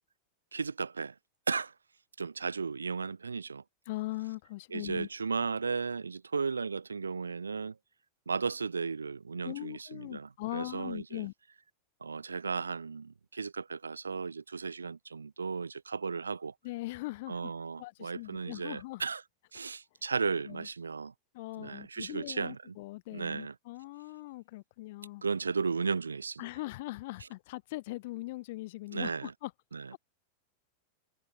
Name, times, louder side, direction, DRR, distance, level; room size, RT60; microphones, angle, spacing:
voice 1, 0.5-1.1 1.5-1.7 2.2-3.6 4.7-7.8 8.3-11.3 12.0-16.5 17.3-19.2 19.5-21.1 21.6-22.8 23.1-23.5 25.2-26.4 27.2-27.3 28.9-29.3 29.7-29.9, right 5 dB, 75° right, 4.5 m, -35 dB
voice 2, 3.9-5.1 9.4-11.3 16.6-17.5 17.8-19.0 20.5-20.7 21.3-25.2 26.4-29.5 29.9-30.0, left 20 dB, 50° left, 7.3 m, -40 dB
figure-of-eight pair, 90°, 0 cm